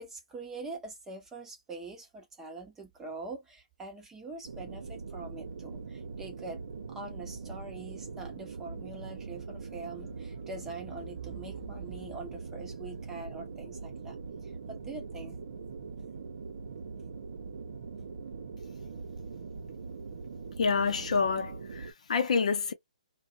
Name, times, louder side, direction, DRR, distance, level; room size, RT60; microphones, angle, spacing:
voice 1, 0.0-6.6 6.9-15.4, right 3 dB, 10° right, 0.8 m, -44 dB
sound 1, 4.4-21.9, right 4 dB, 65° right, 0.7 m, -42 dB
voice 2, 20.6-22.7, left 5 dB, 65° left, 0.7 m, -28 dB
2.4 x 2.2 x 2.5 m
hypercardioid pair, 150°, 4 cm